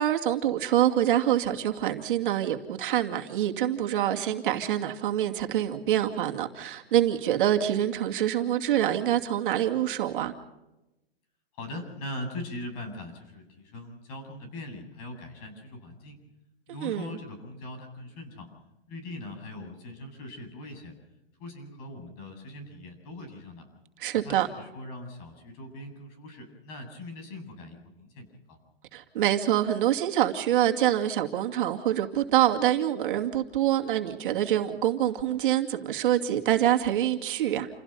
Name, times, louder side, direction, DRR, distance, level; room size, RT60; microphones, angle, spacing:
voice 1, 0.0-10.3 16.8-17.2 24.0-24.5 28.9-37.7, right 11 dB, 55° right, 4 dB, 2.6 m, -25 dB
voice 2, 11.6-16.2 16.7-18.5 18.9-20.9 21.4-23.7 24.1-28.6, left 1 dB, 40° left, 6 dB, 7.8 m, -41 dB
29.0 x 17.0 x 5.6 m, 0.96 s
hypercardioid pair, 150°, 31 cm